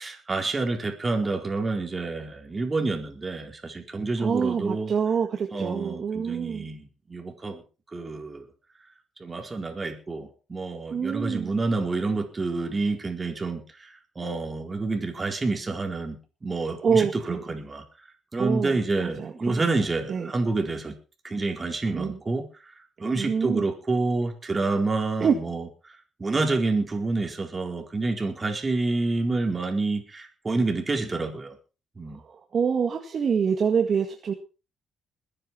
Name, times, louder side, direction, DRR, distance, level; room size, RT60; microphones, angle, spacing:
voice 1, 0.0-4.9 5.5-7.6 7.9-8.5 9.2-17.8 18.3-20.9 21.2-22.7 23.0-25.7 26.2-31.6 32.0-32.2, right 3 dB, 25° right, 4 dB, 4.3 m, -28 dB
voice 2, 4.2-6.7 10.9-11.5 16.8-17.4 18.4-18.7 19.0-19.6 20.1-20.3 21.9-22.2 23.2-23.6 25.2-25.4 32.5-34.3, right 6 dB, 50° right, 4 dB, 1.9 m, -26 dB
21.5 x 10.0 x 4.5 m, 0.34 s
cardioid pair, 90°, 0 cm